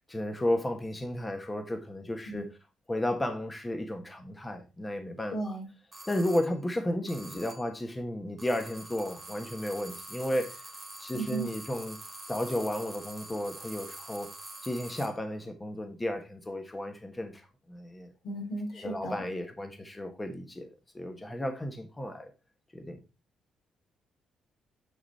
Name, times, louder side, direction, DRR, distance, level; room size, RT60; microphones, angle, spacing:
voice 1, 0.1-2.5 2.9-5.4 6.1-10.6 11.0-12.0 12.3-14.3 14.6-18.1 18.8-20.7 20.9-22.3 22.7-23.0, left 1 dB, 15° left, 1.3 m, -33 dB
voice 2, 5.3-5.7 11.1-11.5 18.2-19.2, right 2 dB, 65° left, 3.3 m, -35 dB
sound 1, 5.9-6.6 7.1-7.8 8.4-15.3, right 1 dB, 10° right, 1.8 m, -46 dB
9.7 x 4.0 x 4.1 m
cardioid pair, 90°, 0 cm